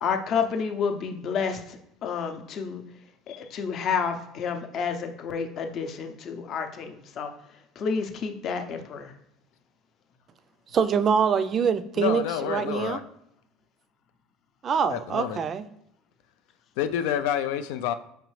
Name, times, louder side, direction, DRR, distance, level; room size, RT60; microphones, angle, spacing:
voice 1, 0.0-2.8 3.3-7.3 7.8-9.1, left 6 dB, 45° left, 0.6 m, -30 dB
voice 2, 10.7-13.0 14.6-15.7, right 7 dB, 30° right, 0.3 m, -24 dB
voice 3, 12.0-13.0 14.9-15.4 16.8-17.9, left 10 dB, 80° left, 0.3 m, -28 dB
5.0 x 3.2 x 3.2 m
cardioid pair, 140°, 0 cm